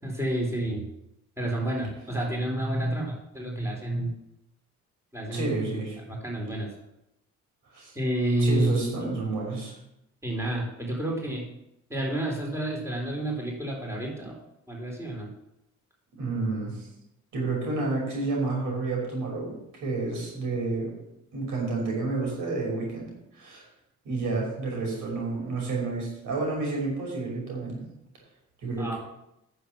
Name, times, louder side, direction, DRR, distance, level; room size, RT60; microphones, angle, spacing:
voice 1, 0.0-0.9 1.4-4.1 5.1-5.5 6.1-6.7 7.9-9.2 10.2-11.6 11.9-14.4 14.7-15.3 28.8-29.0, right 1 dB, 10° right, -2 dB, 4.1 m, -29 dB
voice 2, 5.3-6.0 7.7-7.9 8.4-9.7 16.2-16.9 17.3-20.9 21.3-23.1 23.4-23.6 24.0-27.8 28.6-29.0, right 3 dB, 85° right, -1 dB, 5.6 m, -30 dB
9.9 x 7.4 x 7.4 m, 0.84 s
cardioid pair, 90°, 30 cm